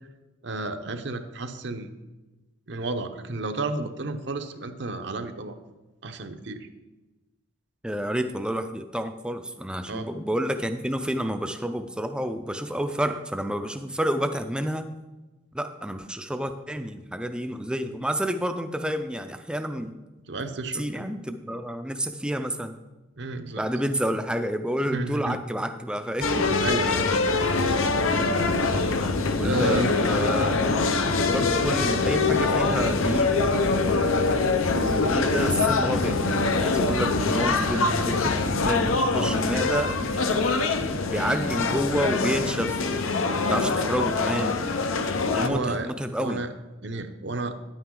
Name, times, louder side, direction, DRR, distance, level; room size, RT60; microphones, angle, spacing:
voice 1, 0.4-1.9 2.7-5.6 6.0-6.7 9.9-10.1 20.3-21.1 23.2-23.6 24.9-25.4 26.6-27.1 29.4-29.9 37.7-37.9 45.4-45.9 46.2-46.5 46.8-47.5, right 2 dB, 60° right, 7 dB, 0.7 m, -31 dB
voice 2, 7.8-14.8 15.5-19.9 20.7-22.8 23.6-26.5 29.4-30.6 31.1-33.3 34.7-40.4 41.1-44.6 45.4-46.4, equal, 5° right, 8 dB, 0.4 m, -29 dB
sound 1, 26.2-45.5, left 3 dB, 90° left, 0.8 m, -24 dB
10.5 x 8.8 x 3.8 m, 1.1 s
head